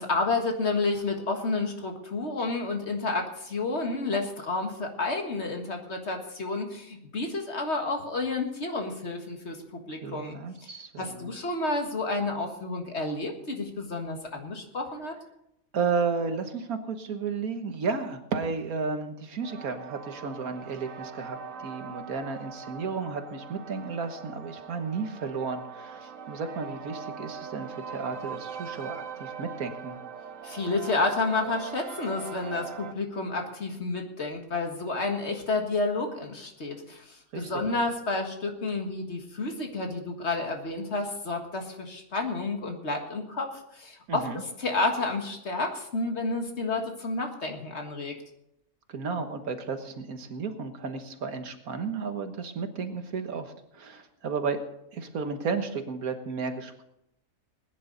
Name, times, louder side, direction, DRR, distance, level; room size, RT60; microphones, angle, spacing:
voice 1, 0.0-9.6 9.9-10.7 11.0-15.2 30.4-43.5 43.7-48.1, left 3 dB, 50° left, 3 dB, 1.9 m, -30 dB
voice 2, 10.0-11.3 15.7-30.0 37.3-37.5 44.1-44.4 48.9-54.6 54.9-56.8, right 5 dB, 85° right, 7 dB, 1.8 m, -33 dB
sound 1, 19.4-32.9, right 6 dB, 65° right, 1.3 m, -41 dB
20.0 x 10.5 x 4.0 m, 0.80 s
omnidirectional pair, 1.5 m